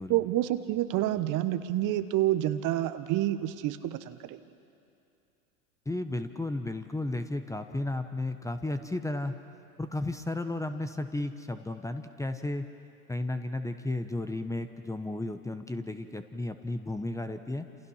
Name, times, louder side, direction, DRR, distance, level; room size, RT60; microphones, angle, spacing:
voice 1, 0.1-4.4, right 14 dB, 40° right, 11 dB, 1.3 m, -28 dB
voice 2, 5.8-9.4 9.8-12.7 13.1-17.7, left 2 dB, 5° left, 8 dB, 1.1 m, -33 dB
28.5 x 28.0 x 5.7 m, 2.6 s
hypercardioid pair, 90°, 46 cm